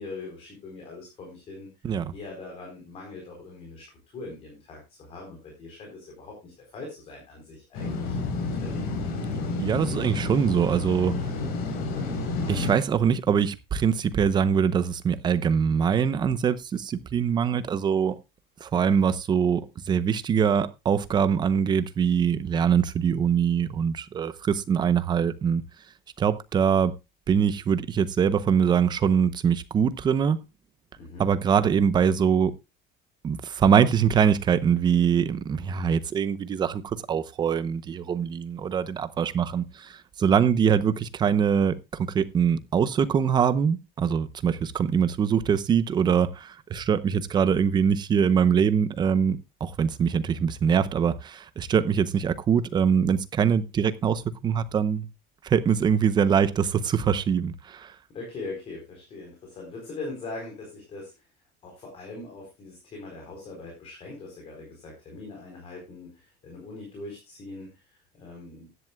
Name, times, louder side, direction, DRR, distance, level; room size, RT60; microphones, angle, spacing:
voice 1, 0.0-3.9 4.1-9.0 31.0-31.3 58.1-61.3 61.6-68.7, left 3 dB, 30° left, 4.2 m, -41 dB
sound 1, 7.7-12.7, left 3 dB, 50° left, 3.8 m, -30 dB
voice 2, 9.6-11.1 12.5-18.2 18.6-25.6 26.2-26.9 27.3-30.4 31.2-32.5 33.2-55.1 55.4-57.9, right 7 dB, 20° right, 0.8 m, -23 dB
15.5 x 11.0 x 2.3 m
cardioid pair, 180°, 20 cm